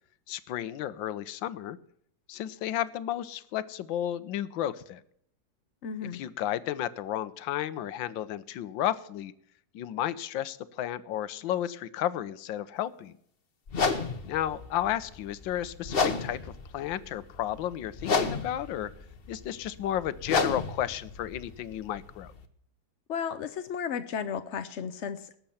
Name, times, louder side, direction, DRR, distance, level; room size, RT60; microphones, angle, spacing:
voice 1, 0.3-1.8 2.3-5.0 6.1-9.3 9.7-13.2 14.2-18.9 19.3-22.3, left 11 dB, 80° left, 16 dB, 1.5 m, -33 dB
voice 2, 5.8-6.2 23.1-25.4, left 7 dB, 60° left, 10 dB, 0.7 m, -34 dB
sound 1, 13.7-22.4, left 4 dB, 35° left, 1.1 m, -32 dB
19.0 x 7.7 x 5.7 m, 0.67 s
omnidirectional pair, 2.0 m